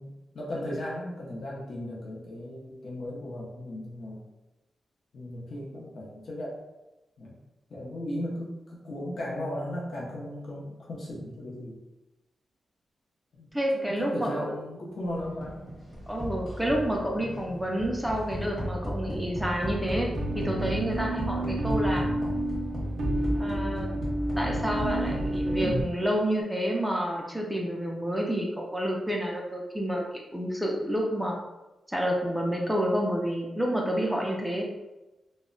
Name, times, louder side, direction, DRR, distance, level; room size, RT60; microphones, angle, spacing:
voice 1, 0.0-4.2 5.1-6.6 7.2-7.3 7.7-11.8 13.3-15.7 17.2-17.5 21.9-22.2, left 1 dB, 50° left, -4 dB, 0.5 m, -36 dB
voice 2, 13.5-14.5 16.1-22.0 23.4-23.9 24.3-30.0 30.3-31.4 31.9-34.6, equal, ahead, -1 dB, 0.3 m, -29 dB
sound 1, 15.1-26.0, equal, 20° left, 0.8 m, -36 dB
sound 2, 20.2-25.8, right 1 dB, 85° right, 0.4 m, -30 dB
2.1 x 2.0 x 3.7 m, 1.0 s
wide cardioid pair, 175°, 0 cm